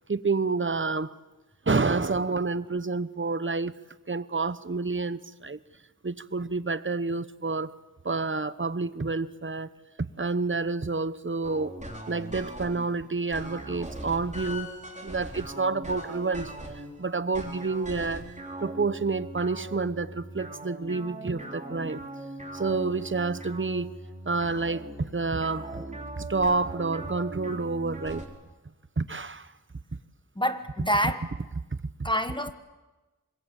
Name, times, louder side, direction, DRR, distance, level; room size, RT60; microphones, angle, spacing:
voice 1, 0.1-1.1 1.7-3.7 4.1-5.6 6.0-7.7 8.0-9.7 10.0-11.7 12.1-14.7 15.0-16.5 17.0-18.3 18.6-22.0 22.5-23.9 24.3-25.8 26.2-28.3 29.0-29.5 31.7-32.1, right 3 dB, 35° right, 15 dB, 1.0 m, -29 dB
sound 1, 11.4-12.9 13.3-16.9 17.3-28.3, right 1 dB, 20° right, 3.8 m, -40 dB
voice 2, 30.3-31.3 32.0-32.5, equal, 15° left, 9 dB, 1.5 m, -27 dB
25.5 x 22.0 x 8.2 m, 1.2 s
wide cardioid pair, 45°, 33 cm